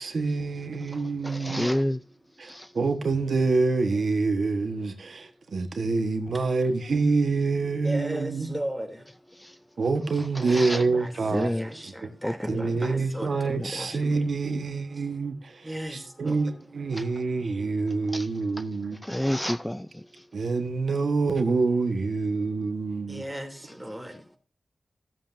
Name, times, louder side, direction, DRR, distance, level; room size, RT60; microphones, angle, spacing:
voice 1, 0.0-1.7 2.4-8.6 9.8-11.5 11.8-12.1 12.5-15.7 16.2-19.0 20.3-23.2, right 3 dB, 70° right, 1.3 m, -26 dB
voice 2, 0.9-2.0 2.4-2.7 9.4-9.6 10.3-10.8 11.3-11.8 12.2-12.6 13.5-13.7 16.9-17.1 18.1-18.3 18.6-18.7 19.0-20.2, equal, 10° left, 0.4 m, -30 dB
voice 3, 6.3-6.7 7.8-9.1 9.6-9.8 10.5-14.3 14.9-15.1 15.6-16.6 16.9-17.4 23.1-24.4, right 1 dB, 5° right, 2.9 m, -38 dB
16.0 x 7.6 x 2.6 m
cardioid pair, 70°, 0 cm